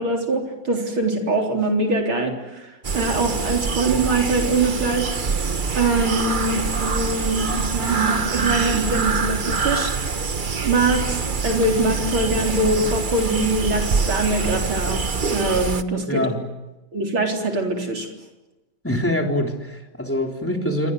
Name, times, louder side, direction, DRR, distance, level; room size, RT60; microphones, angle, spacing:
voice 1, 0.0-5.1 5.7-9.9 10.6-16.3 16.9-18.1, right 2 dB, 75° right, 2 dB, 4.7 m, -23 dB
sound 1, 2.8-15.8, right 4 dB, 35° right, 0.8 m, -25 dB
voice 2, 16.1-16.4 18.8-20.9, left 1 dB, 5° left, 2 dB, 3.7 m, -24 dB
28.5 x 24.5 x 8.0 m, 1.0 s
omnidirectional pair, 2.3 m